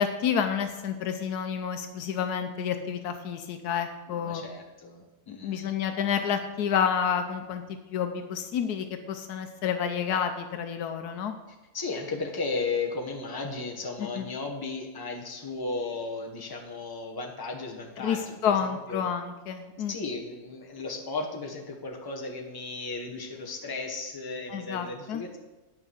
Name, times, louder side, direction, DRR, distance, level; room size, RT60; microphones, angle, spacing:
voice 1, 0.0-4.4 5.3-7.6 7.9-11.3 14.0-14.2 18.0-19.9 24.5-25.2, left 7 dB, 85° left, 7 dB, 1.3 m, -29 dB
voice 2, 4.1-5.7 11.7-19.1 19.9-25.4, left 3 dB, 15° left, 0 dB, 1.1 m, -35 dB
9.1 x 5.7 x 7.1 m, 1.1 s
omnidirectional pair, 1.6 m